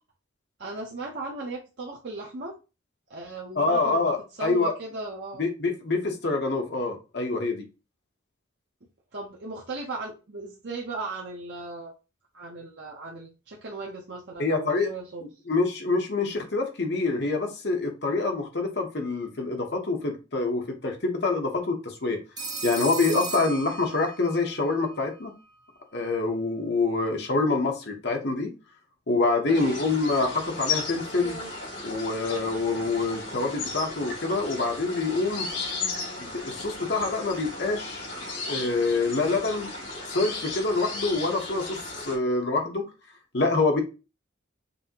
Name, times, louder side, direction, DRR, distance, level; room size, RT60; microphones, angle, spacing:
voice 1, 0.6-2.6 3.1-5.5 9.1-11.9 12.3-15.2 29.5-29.9, right 3 dB, 60° right, -2 dB, 0.7 m, -37 dB
voice 2, 3.6-4.7 5.4-7.6 14.4-14.9 15.2-22.2 22.6-25.3 25.9-28.5 29.1-31.4 31.8-35.5 36.2-38.1 38.5-39.7 40.1-42.9 43.3-43.8, left 3 dB, 55° left, 3 dB, 1.0 m, -26 dB
Telephone, 22.4-24.4, right 3 dB, 20° right, 0.5 m, -35 dB
sound 1, 29.5-42.2, left 3 dB, 75° left, 2.6 m, -35 dB
5.3 x 2.7 x 2.8 m, 0.30 s
head